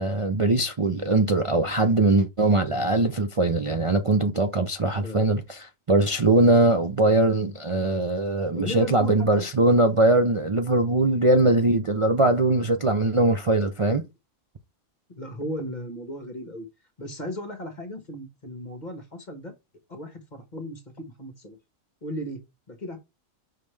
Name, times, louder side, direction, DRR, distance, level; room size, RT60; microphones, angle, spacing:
voice 1, 0.0-14.0, right 2 dB, 50° right, 0.4 m, -21 dB
voice 2, 5.0-5.3 8.5-9.5 15.1-16.7 17.0-19.5 19.9-21.6 22.0-23.0, equal, 35° left, 1.4 m, -36 dB
5.7 x 5.3 x 3.3 m
omnidirectional pair, 1.4 m